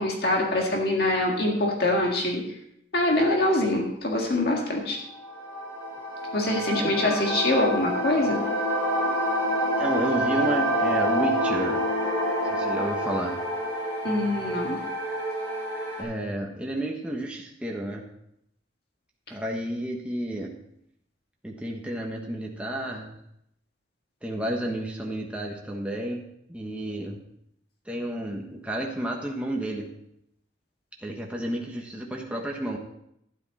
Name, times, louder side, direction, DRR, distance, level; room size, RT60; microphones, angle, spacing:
voice 1, 0.0-2.4 2.9-5.0 6.3-8.4 14.0-14.8, left 1 dB, 55° left, 0 dB, 1.9 m, -24 dB
sound 1, 5.1-16.0, equal, 15° left, 5.2 m, -27 dB
voice 2, 6.7-7.2 9.8-11.9 12.4-13.4 16.0-18.0 19.3-20.5 21.4-23.1 24.2-26.2 26.5-27.2 27.9-29.9 31.0-32.8, right 1 dB, 5° right, -1 dB, 1.2 m, -31 dB
12.0 x 9.9 x 4.2 m, 0.75 s
head